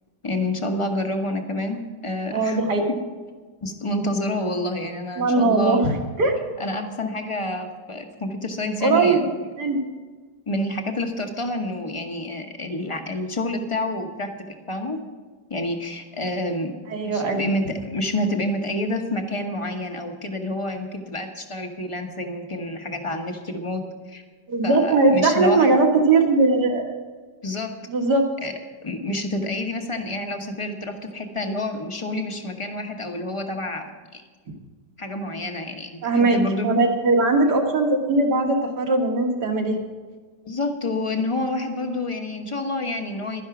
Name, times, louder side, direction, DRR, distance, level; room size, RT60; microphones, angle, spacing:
voice 1, 0.2-2.6 3.6-5.8 6.6-9.3 10.5-14.3 14.7-15.0 15.5-16.7 17.0-24.2 24.6-25.7 27.4-27.7 28.4-28.5 28.8-34.2 35.0-36.8 40.4-43.4, left 1 dB, 20° left, 4 dB, 0.9 m, -28 dB
voice 2, 2.3-2.8 5.2-5.8 6.2-6.4 8.8-9.3 9.6-9.8 16.9-17.5 24.5-26.9 27.9-28.3 36.0-39.8, right 3 dB, 70° right, 2 dB, 2.1 m, -20 dB
12.0 x 11.0 x 6.0 m, 1.4 s
omnidirectional pair, 1.9 m